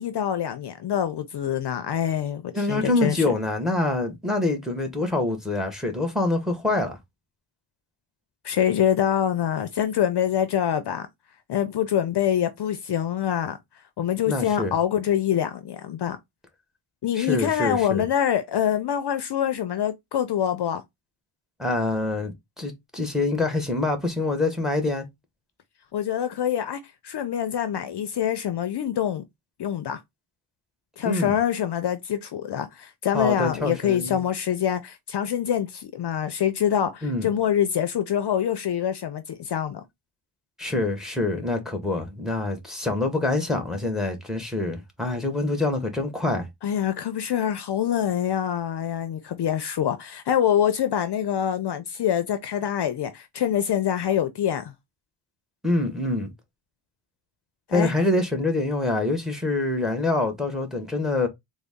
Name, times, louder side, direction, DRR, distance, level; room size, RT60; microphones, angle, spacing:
voice 1, 0.0-3.2 8.4-11.1 11.5-13.6 14.0-16.2 17.0-20.8 25.9-29.2 29.6-30.0 31.0-39.8 46.6-54.7 57.7-57.9, left 9 dB, 55° left, 0.5 m, -25 dB
voice 2, 2.5-7.0 14.3-14.7 17.1-18.1 21.6-25.1 31.0-31.3 33.1-34.2 37.0-37.3 40.6-46.5 55.6-56.3 57.7-61.3, left 2 dB, ahead, 0.9 m, -25 dB
3.9 x 2.1 x 3.4 m
wide cardioid pair, 125°, 50 cm